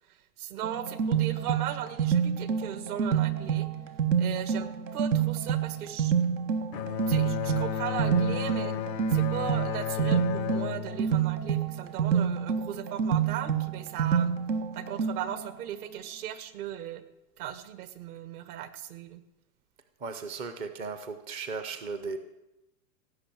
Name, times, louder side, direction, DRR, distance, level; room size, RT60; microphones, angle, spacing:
voice 1, 0.1-3.7 4.2-6.1 7.1-8.7 9.1-14.3 14.7-17.0 17.4-19.2, right 11 dB, 60° right, 11 dB, 1.8 m, -37 dB
sound 1, 0.6-15.5, right 7 dB, 90° right, 1.7 m, -28 dB
Bowed string instrument, 6.7-12.2, left 11 dB, 90° left, 0.7 m, -34 dB
voice 2, 20.0-22.2, right 4 dB, 15° right, 8 dB, 0.4 m, -36 dB
17.0 x 6.7 x 9.0 m, 0.96 s
hypercardioid pair, 135°, 49 cm